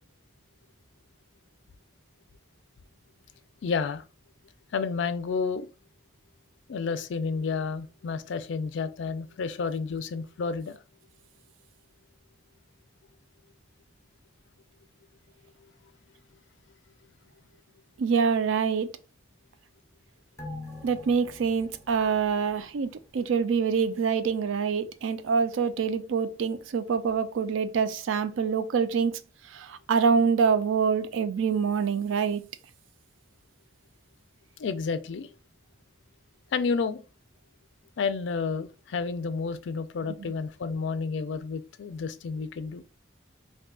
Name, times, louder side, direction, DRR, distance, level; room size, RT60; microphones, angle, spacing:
voice 1, 3.6-4.0 4.7-5.7 6.7-10.8 34.6-35.3 36.5-37.0 38.0-42.8, left 5 dB, 75° left, 0.4 m, -30 dB
voice 2, 18.0-18.9 20.8-29.2 29.5-32.5, right 6 dB, 85° right, 0.4 m, -25 dB
sound 1, 20.4-23.3 23.6-23.7, left 2 dB, 15° left, 0.4 m, -44 dB
2.6 x 2.3 x 3.6 m
head